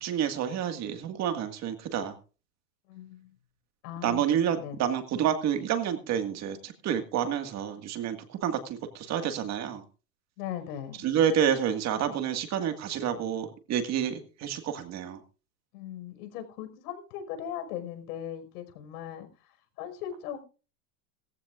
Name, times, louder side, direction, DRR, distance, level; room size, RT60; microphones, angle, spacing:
voice 1, 0.0-2.2 4.0-9.8 11.0-15.2, right 9 dB, 35° right, 7 dB, 1.9 m, -29 dB
voice 2, 2.9-3.3 3.8-4.8 10.4-11.1 15.7-20.4, left 10 dB, 70° left, 7 dB, 5.3 m, -39 dB
19.5 x 15.0 x 2.5 m, 0.35 s
supercardioid pair, 145°, 48 cm